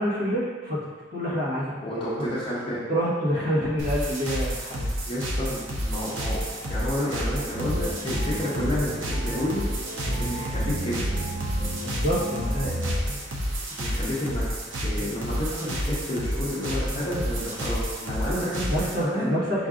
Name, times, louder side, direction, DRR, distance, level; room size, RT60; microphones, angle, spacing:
voice 1, 0.0-2.0 2.9-4.9 11.8-12.7 18.6-19.7, equal, 55° right, -8 dB, 1.4 m, -27 dB
voice 2, 1.8-2.9 5.1-6.4 6.7-9.7 10.2-11.0 13.8-14.5 14.8-19.4, left 1 dB, 30° left, -8 dB, 0.7 m, -30 dB
sound 1, 3.8-19.0, equal, 80° right, 0.8 m, -30 dB
sound 2, 7.5-13.0, right 1 dB, 30° right, 0.6 m, -34 dB
5.5 x 2.5 x 3.6 m, 1.4 s
head